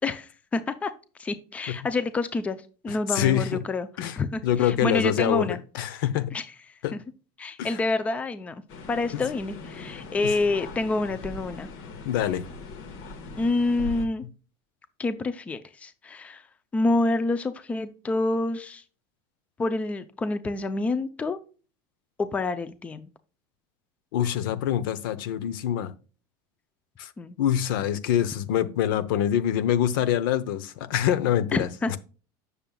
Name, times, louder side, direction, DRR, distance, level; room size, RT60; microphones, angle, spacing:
voice 1, 0.0-0.9 1.2-2.6 2.8-3.9 4.2-5.6 6.3-6.5 6.9-7.0 7.4-8.6 8.9-11.7 13.4-14.2 15.0-16.4 16.7-18.8 19.6-21.4 22.2-23.1 27.2-27.4 31.5-32.0, left 2 dB, 10° left, 0.5 m, -27 dB
voice 2, 2.9-3.6 4.0-4.2 4.4-6.3 6.8-6.9 7.6-7.8 9.1-9.2 12.0-12.5 24.1-25.9 27.0-27.1 27.4-32.0, left 10 dB, 85° left, 0.8 m, -25 dB
sound 1, 8.7-14.1, left 3 dB, 55° left, 1.4 m, -40 dB
8.8 x 6.7 x 2.3 m
cardioid pair, 165°, 11 cm